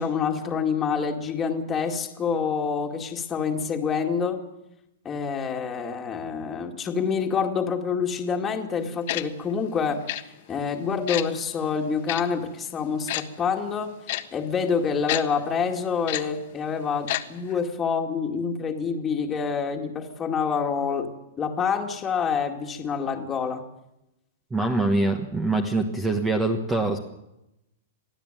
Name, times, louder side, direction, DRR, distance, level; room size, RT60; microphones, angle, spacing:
voice 1, 0.0-4.4 5.0-10.2 10.5-21.1 21.4-23.6, left 6 dB, 15° left, 2 dB, 2.2 m, -27 dB
Tick-tock, 9.1-9.2 10.1-10.2 11.1-11.2 12.1-12.2 13.1-13.2 14.1-14.2 15.1-15.2 16.1-16.2 17.1-17.2 17.5-17.6, left 16 dB, 45° left, 1.5 m, -27 dB
voice 2, 24.5-27.0, right 2 dB, 10° right, 6 dB, 1.4 m, -24 dB
23.5 x 15.5 x 9.1 m, 0.89 s
supercardioid pair, 165°, 0 cm